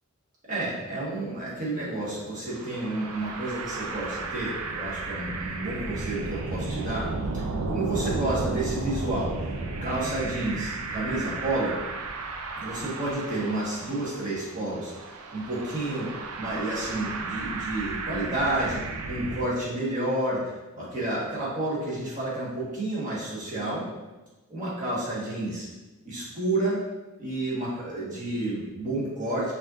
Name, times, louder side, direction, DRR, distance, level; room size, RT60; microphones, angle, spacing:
voice 1, 0.5-7.1 7.3-9.4 9.8-11.8 12.6-16.1 16.4-18.8 19.1-23.9 24.5-25.7 26.0-26.8 27.2-29.5, right 2 dB, 35° right, -7 dB, 1.3 m, -30 dB
sound 1, 2.5-19.4, right 3 dB, 85° right, 0.4 m, -34 dB
5.3 x 2.8 x 2.4 m, 1.1 s
head